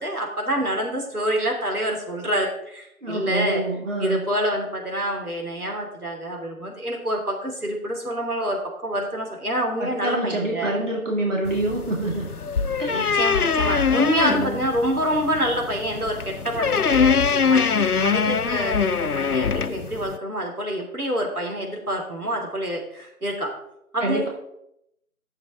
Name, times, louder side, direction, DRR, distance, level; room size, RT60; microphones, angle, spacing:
voice 1, 0.0-3.6 4.0-10.7 12.9-23.5 23.9-24.3, equal, 80° right, 1 dB, 3.1 m, -27 dB
voice 2, 3.0-4.2 9.8-12.3 12.8-13.2 13.9-14.6 24.0-24.3, right 2 dB, 55° right, -2 dB, 2.5 m, -27 dB
sound 1, 11.4-20.2, left 5 dB, 85° left, 0.7 m, -23 dB
11.5 x 7.3 x 3.7 m, 0.80 s
figure-of-eight pair, 175°, 44 cm